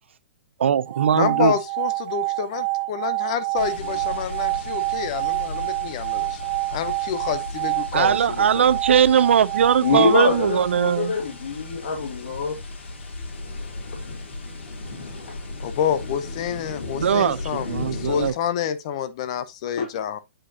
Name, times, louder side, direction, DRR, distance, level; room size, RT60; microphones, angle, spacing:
voice 1, 0.6-1.5 7.9-11.1 17.0-18.3, right 8 dB, 85° right, 0.5 m, -20 dB
sound 1, 0.8-11.0, right 24 dB, 20° right, 0.7 m, -28 dB
voice 2, 1.1-6.4 6.7-8.6 15.6-20.2, left 9 dB, 30° left, 0.6 m, -28 dB
sound 2, 3.6-18.3, left 2 dB, 80° left, 2.7 m, -36 dB
voice 3, 9.8-12.6 13.9-14.1 19.8-19.9, left 5 dB, 60° left, 2.0 m, -24 dB
8.7 x 5.1 x 2.7 m
hypercardioid pair, 175°, 6 cm